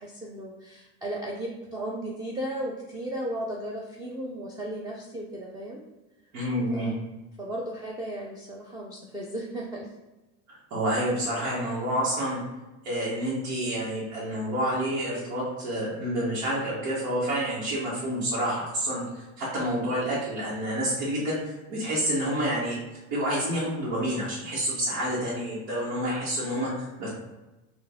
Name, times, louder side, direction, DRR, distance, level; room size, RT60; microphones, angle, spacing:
voice 1, 0.0-5.8 6.7-6.9 7.4-9.9, right 1 dB, 10° right, -1 dB, 0.5 m, -35 dB
voice 2, 6.3-7.0 10.5-12.4 12.8-21.4 21.7-22.8 23.1-27.1, equal, 80° right, -7 dB, 1.4 m, -28 dB
4.6 x 2.6 x 3.5 m, 1.1 s
supercardioid pair, 105°, 40 cm